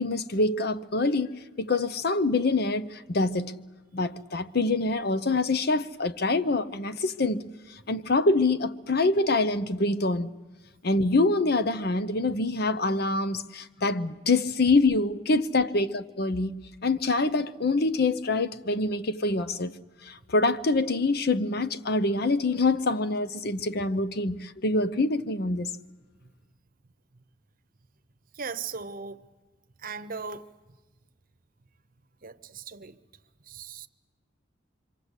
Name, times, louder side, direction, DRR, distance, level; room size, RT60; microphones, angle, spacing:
voice 1, 0.0-1.3 1.6-3.6 3.9-7.4 7.9-10.3 10.8-19.8 20.0-25.7, left 2 dB, 50° left, 0.8 m, -25 dB
voice 2, 28.3-29.2 29.8-30.5 32.2-33.0 33.5-33.9, right 5 dB, 45° right, 0.9 m, -38 dB
25.0 x 25.0 x 8.2 m
head